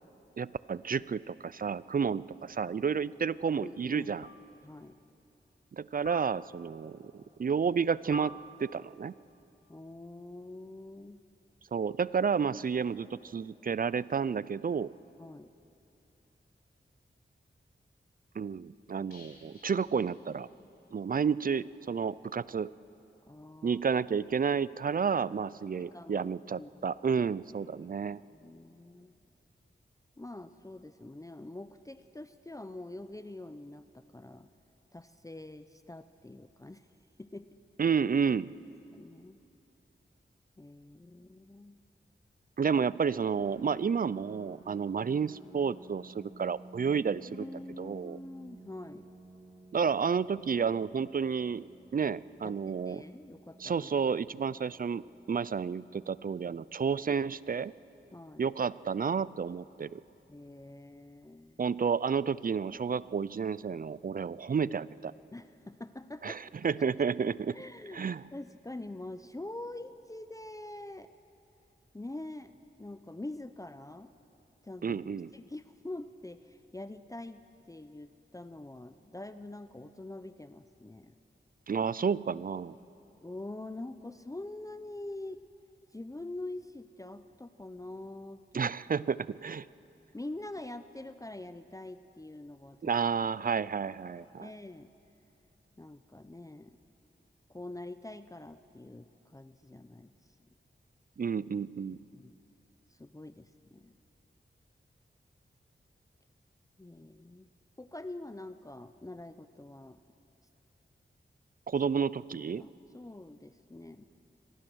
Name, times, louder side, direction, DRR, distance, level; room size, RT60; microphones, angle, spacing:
voice 1, 0.4-4.3 5.7-9.1 11.7-14.9 18.4-20.5 20.9-22.7 23.6-28.2 37.8-38.5 42.6-47.4 47.8-48.2 49.7-51.6 51.9-53.0 53.6-55.0 55.3-57.7 58.4-60.0 61.6-65.1 66.2-66.4 66.6-67.6 67.9-68.2 74.8-75.3 81.7-82.7 88.5-89.7 92.8-94.5 101.2-102.0 111.7-112.6, right 6 dB, 45° right, 19 dB, 0.4 m, -31 dB
sound 1, 1.0-1.1 2.6-3.0 4.2-4.8 6.1-6.8 8.1-9.1, left 3 dB, 70° left, 1.2 m, -50 dB
voice 2, 3.6-4.1 4.6-5.0 9.7-11.2 15.2-15.5 23.3-23.8 25.8-26.8 27.8-29.2 30.2-34.5 34.9-36.9 37.2-37.5 38.9-39.4 40.6-41.8 47.2-49.1 52.4-53.9 58.1-58.5 60.3-61.6 65.3-66.5 67.5-71.1 71.9-72.5 72.8-74.1 74.6-81.1 83.2-85.4 85.9-89.1 90.1-92.9 94.4-94.9 95.8-96.8 97.5-100.1 102.1-102.4 102.9-104.0 106.8-107.5 107.8-110.0 112.6-114.0, left 2 dB, 15° left, 11 dB, 0.6 m, -45 dB
sound 2, 19.1-20.9 21.2-21.3 21.6-21.7, left 3 dB, 50° left, 5.1 m, -59 dB
Piano, 43.4-58.8, right 2 dB, 25° right, 4.2 m, -55 dB
24.5 x 18.5 x 6.3 m, 2.8 s
cardioid pair, 55°, 20 cm